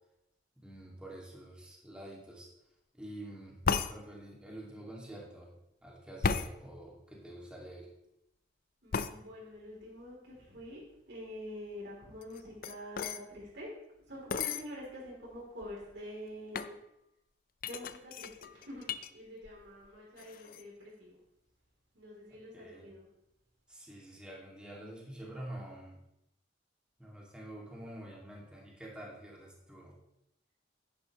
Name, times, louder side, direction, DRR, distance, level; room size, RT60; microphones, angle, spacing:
voice 1, 0.6-2.5 2.9-3.6 3.9-5.5 5.8-7.9 22.5-22.9 23.7-26.0 27.0-30.0, right 1 dB, 5° right, -4 dB, 2.4 m, -47 dB
sound 1, 3.6-3.9 6.2-6.5 8.9-9.1 12.2-13.2 14.3-14.6 15.3-15.4 15.6-16.0 16.5-16.7 17.6-19.1 19.4-19.9 20.2-20.6, left 5 dB, 55° left, 0.5 m, -34 dB
voice 2, 8.8-13.7 13.9-16.8 17.7-21.2 21.9-23.1, equal, 65° right, -5 dB, 3.5 m, -46 dB
10.5 x 10.0 x 3.2 m, 0.82 s
head